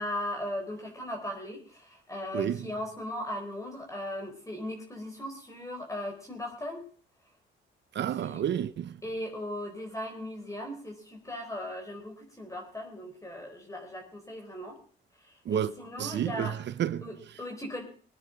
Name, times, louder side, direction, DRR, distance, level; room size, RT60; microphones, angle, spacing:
voice 1, 0.0-6.8 8.2-8.4 9.0-14.8 15.2-16.6 17.0-17.8, left 1 dB, 15° left, 4.2 m, -38 dB
voice 2, 2.3-2.7 7.9-9.0 15.4-15.7 16.0-17.4, right 10 dB, 60° right, 0.8 m, -31 dB
22.0 x 9.7 x 5.1 m
cardioid pair, 90°, 20 cm